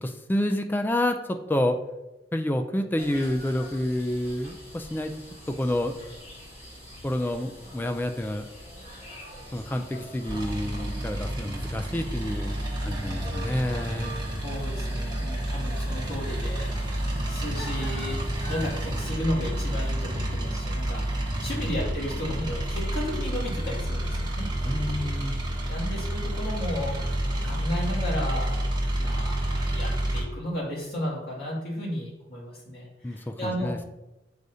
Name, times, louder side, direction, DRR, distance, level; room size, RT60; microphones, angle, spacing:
voice 1, 0.0-1.8 2.3-5.1 5.5-5.9 7.0-8.5 9.5-12.6 12.8-14.2 21.5-21.7 24.6-25.4 33.0-33.8, left 1 dB, 10° left, 6 dB, 0.3 m, -29 dB
sound 1, 3.0-19.1, equal, 35° left, 1.8 m, -44 dB
sound 2, 10.3-30.2, right 1 dB, 25° right, 1.2 m, -29 dB
voice 2, 14.4-16.7 17.1-24.5 25.7-28.6 29.0-33.7, equal, 55° left, -5 dB, 2.2 m, -34 dB
7.8 x 4.8 x 2.7 m, 0.99 s
head